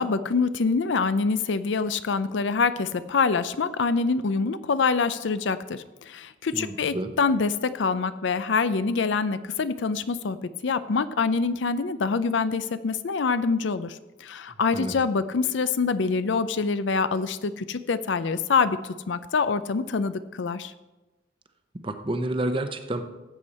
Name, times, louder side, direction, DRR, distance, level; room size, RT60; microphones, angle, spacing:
voice 1, 0.0-10.4 10.6-20.7, left 4 dB, 75° left, 13 dB, 0.5 m, -25 dB
voice 2, 6.5-7.1 14.7-14.9 21.8-23.0, right 1 dB, 25° right, 8 dB, 0.8 m, -29 dB
14.0 x 8.1 x 4.2 m, 1.1 s
head